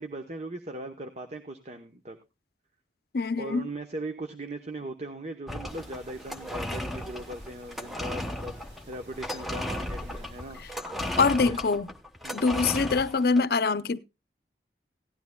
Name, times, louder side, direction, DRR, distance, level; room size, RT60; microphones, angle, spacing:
voice 1, 0.0-2.2 3.4-10.6 11.2-11.6 12.2-12.5, right 1 dB, 40° right, 0.9 m, -39 dB
voice 2, 3.1-3.7 11.2-11.9 12.3-14.0, left 4 dB, 60° left, 0.6 m, -24 dB
sound 1, 5.5-13.4, left 1 dB, ahead, 0.9 m, -35 dB
sound 2, 5.6-10.7, right 1 dB, 80° right, 4.3 m, -55 dB
17.0 x 12.0 x 2.2 m
head